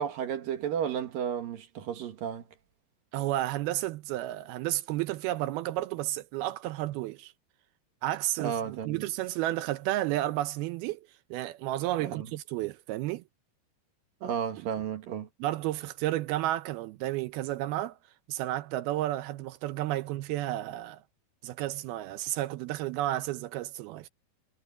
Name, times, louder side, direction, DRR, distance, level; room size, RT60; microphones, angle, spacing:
voice 1, 0.0-2.4 8.4-9.0 12.0-12.3 14.2-15.3, right 8 dB, 60° right, 3.0 m, -33 dB
voice 2, 3.1-7.3 8.0-13.2 14.6-14.7 15.4-18.0 18.3-21.0 21.4-24.1, right 15 dB, 80° right, 2.4 m, -32 dB
omnidirectional pair, 4.9 m